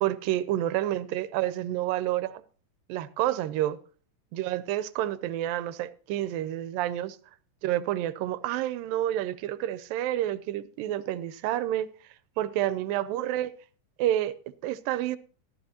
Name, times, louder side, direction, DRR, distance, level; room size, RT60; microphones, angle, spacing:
voice 1, 0.0-2.4 2.9-3.8 4.3-7.2 7.6-11.9 12.4-13.5 14.0-14.3 14.6-15.2, right 13 dB, 85° right, 2.4 m, -29 dB
14.0 x 13.0 x 2.9 m
omnidirectional pair, 3.9 m